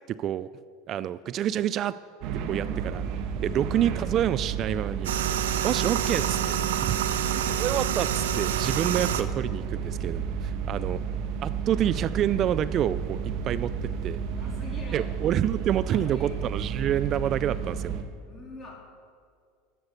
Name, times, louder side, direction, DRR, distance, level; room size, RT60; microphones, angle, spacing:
voice 1, 0.1-0.5 0.9-1.9 2.5-3.0 3.4-5.3 5.6-11.0 11.4-14.2 14.9-17.9, right 10 dB, 45° right, 15 dB, 0.3 m, -28 dB
sound 1, 2.2-18.0, right 6 dB, 60° right, 1.3 m, -32 dB
sound 2, 5.0-9.2, right 10 dB, 85° right, 0.7 m, -28 dB
voice 2, 14.2-15.1 15.8-16.3 18.2-18.9, left 3 dB, 25° left, -1 dB, 3.6 m, -45 dB
12.5 x 8.0 x 6.8 m, 2.2 s
hypercardioid pair, 100°, 0 cm